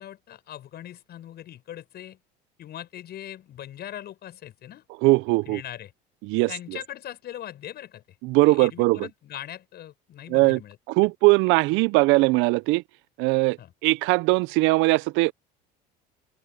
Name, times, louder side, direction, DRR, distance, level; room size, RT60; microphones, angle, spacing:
voice 1, 0.0-2.2 2.6-4.8 5.5-5.9 6.5-8.0 8.5-10.8 13.6-13.7, left 12 dB, 50° left, 7.5 m, -40 dB
voice 2, 5.0-5.6 6.2-6.5 8.2-9.1 10.3-10.6 10.9-12.8 13.2-13.6 13.8-15.3, right 23 dB, 65° right, 0.6 m, -20 dB
open air
supercardioid pair, 100°, 21 cm